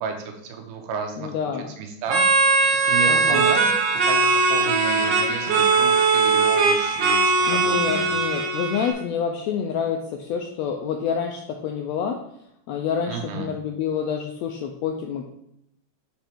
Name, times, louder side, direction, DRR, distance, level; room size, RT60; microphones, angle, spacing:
voice 1, 0.0-3.7 4.1-8.1 13.1-13.5, right 5 dB, 85° right, 4 dB, 2.4 m, -33 dB
voice 2, 1.2-1.7 3.1-3.5 7.5-12.2 12.7-15.3, left 7 dB, 85° left, 3 dB, 1.5 m, -27 dB
sound 1, 2.1-8.9, right 4 dB, 65° right, 1.5 m, -20 dB
5.6 x 5.1 x 4.4 m, 0.75 s
omnidirectional pair, 3.6 m